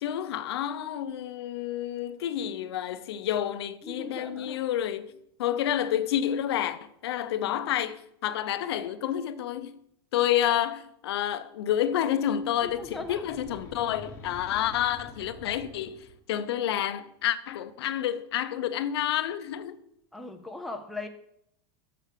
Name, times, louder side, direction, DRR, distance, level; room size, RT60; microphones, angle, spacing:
voice 1, 0.0-5.1 5.4-9.8 10.1-16.0 16.3-19.8, left 11 dB, 80° left, 0.7 m, -29 dB
voice 2, 3.8-4.6 12.6-13.2 20.1-21.1, left 2 dB, ahead, 0.4 m, -39 dB
sound 1, 12.3-16.3, left 3 dB, 20° left, 1.2 m, -47 dB
6.8 x 5.0 x 6.5 m
supercardioid pair, 165°, 13 cm